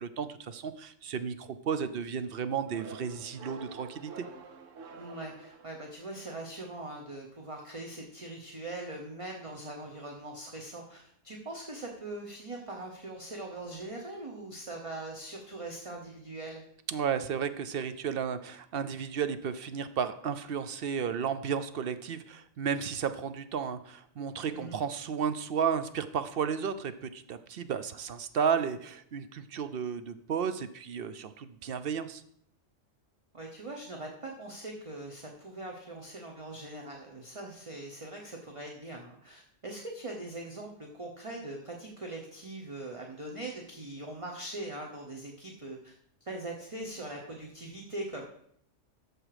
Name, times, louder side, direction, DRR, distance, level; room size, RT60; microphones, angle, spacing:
voice 1, 0.0-4.3 16.9-32.2, right 7 dB, 55° right, 11 dB, 0.8 m, -33 dB
sound 1, 2.7-6.2, right 4 dB, 85° right, 1.2 m, -48 dB
voice 2, 4.9-16.6 24.3-24.8 33.3-45.9 46.2-48.2, right 2 dB, 30° right, 1 dB, 1.1 m, -41 dB
13.5 x 4.9 x 5.0 m, 0.67 s
omnidirectional pair, 1.3 m